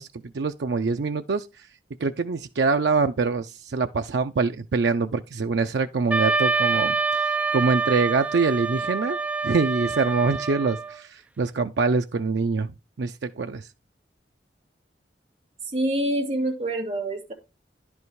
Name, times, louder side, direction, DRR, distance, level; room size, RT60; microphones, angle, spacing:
voice 1, 0.0-1.7 2.0-9.2 9.4-13.7, right 4 dB, 80° right, 0.5 m, -25 dB
Wind instrument woodwind instrument, 6.1-11.0, right 4 dB, 10° right, 0.5 m, -26 dB
voice 2, 15.6-17.3, right 1 dB, 35° right, 2.3 m, -26 dB
10.5 x 5.4 x 4.7 m
head